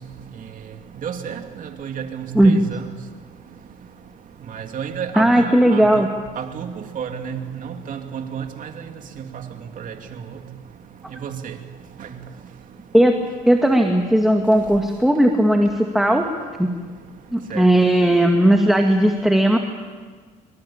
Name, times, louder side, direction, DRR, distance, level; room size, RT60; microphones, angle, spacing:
voice 1, 1.0-2.8 4.5-6.0 6.4-8.7 9.2-9.4 9.8-10.2 11.1-11.5 12.0-12.1 17.5-17.7, right 7 dB, 50° right, 5 dB, 2.7 m, -31 dB
voice 2, 5.2-6.1 12.9-13.2 13.5-16.3 16.6-16.7 17.3-19.6, right 1 dB, ahead, 3 dB, 2.1 m, -16 dB
25.0 x 24.5 x 8.8 m, 1.5 s
cardioid pair, 110°, 17 cm